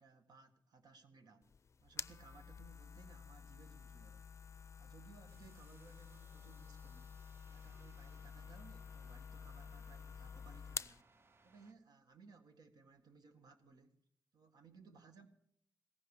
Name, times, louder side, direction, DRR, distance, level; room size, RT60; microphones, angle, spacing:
voice 1, 0.0-1.5 1.8-4.2 4.6-7.1 7.5-11.1 11.4-14.0 14.3-15.3, right 4 dB, 65° right, 1.7 m, -62 dB
sound 1, 1.4-11.0, left 6 dB, 40° left, 0.5 m, -50 dB
sound 2, 5.3-11.7, right 3 dB, 35° right, 0.7 m, -70 dB
17.5 x 15.5 x 4.9 m
cardioid pair, 100°, 7 cm